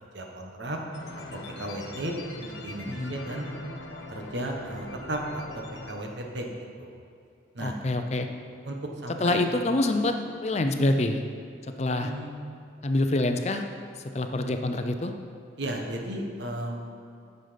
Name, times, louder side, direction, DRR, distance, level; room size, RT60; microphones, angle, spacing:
voice 1, 0.1-0.8 1.6-2.1 2.4-3.5 4.1-5.4 5.9-6.5 6.8-6.9 7.5-7.8 8.6-8.7 9.0-9.4 10.6-10.9 12.0-12.3 15.6-16.9, right 1 dB, 70° right, 1 dB, 1.2 m, -34 dB
sound 1, 0.9-5.9, left 2 dB, 75° left, 1.2 m, -42 dB
voice 2, 2.8-3.2 7.6-8.3 9.2-10.1 10.4-11.2 11.8-12.1 12.8-13.6 14.1-15.1, left 2 dB, 35° left, 6 dB, 0.5 m, -26 dB
9.5 x 6.7 x 5.1 m, 2.4 s
head